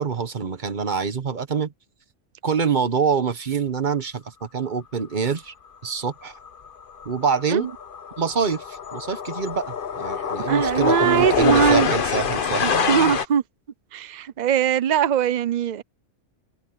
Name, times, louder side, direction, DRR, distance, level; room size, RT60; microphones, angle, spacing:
voice 1, 0.0-1.7 2.4-5.5 5.8-6.3 7.0-7.7 8.2-13.1, right 6 dB, 40° right, 1.2 m, -26 dB
sound 1, 6.5-6.7 6.9-13.2, left 6 dB, 45° left, 1.0 m, -25 dB
voice 2, 10.4-11.9 12.6-13.4 13.9-15.8, right 8 dB, 65° right, 0.4 m, -21 dB
omnidirectional pair, 1.3 m